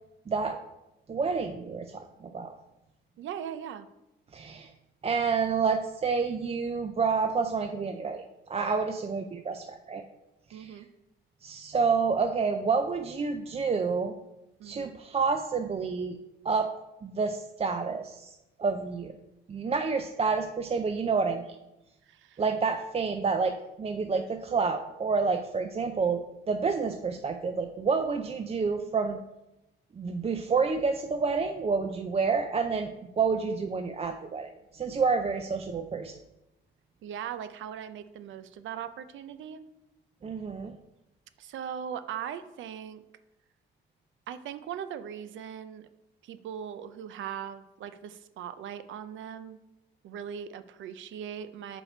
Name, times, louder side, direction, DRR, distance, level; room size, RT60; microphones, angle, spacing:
voice 1, 0.3-0.6 1.1-2.5 4.3-4.7 5.0-10.0 10.5-10.8 11.4-14.2 14.6-16.2 16.4-16.7 17.0-19.2 19.5-21.4 22.4-29.2 29.9-32.9 33.2-36.1 40.2-40.8, right 5 dB, 30° right, 6 dB, 0.5 m, -29 dB
voice 2, 3.2-3.9 10.5-10.9 14.6-15.0 22.0-22.4 37.0-39.6 41.4-43.0 44.3-45.9 46.2-49.6 50.0-51.8, right 8 dB, 75° right, 11 dB, 0.6 m, -39 dB
5.9 x 5.3 x 4.4 m, 0.93 s
cardioid pair, 90°, 20 cm